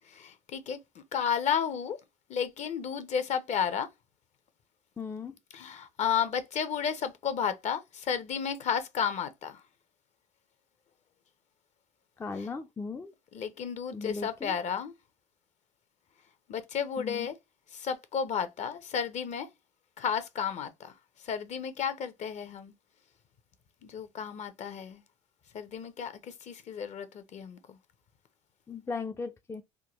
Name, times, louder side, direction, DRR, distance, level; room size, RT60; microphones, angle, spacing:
voice 1, 0.1-2.0 2.3-3.9 5.5-9.6 12.3-12.5 13.3-14.9 16.5-17.3 17.7-19.5 20.0-20.9 21.2-22.7 23.8-25.0 25.5-27.8, left 7 dB, 45° left, 0.8 m, -32 dB
voice 2, 5.0-5.4 12.2-13.1 13.9-14.5 17.0-17.3 28.7-29.6, left 4 dB, 15° left, 0.4 m, -37 dB
3.6 x 2.2 x 2.9 m
supercardioid pair, 85°, 16 cm